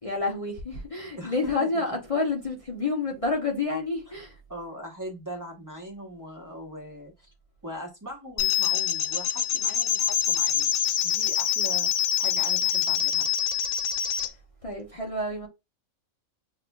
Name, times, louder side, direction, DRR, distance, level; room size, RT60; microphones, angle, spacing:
voice 1, 0.0-4.4 14.1-14.2 14.6-15.5, left 3 dB, 30° left, 0.7 m, -29 dB
voice 2, 1.2-2.0 4.5-7.3 7.6-10.7 11.0-13.3, equal, 15° right, 1.0 m, -40 dB
sound 1, 8.4-14.3, left 10 dB, 75° left, 1.0 m, -25 dB
6.7 x 2.4 x 2.3 m
omnidirectional pair, 1.5 m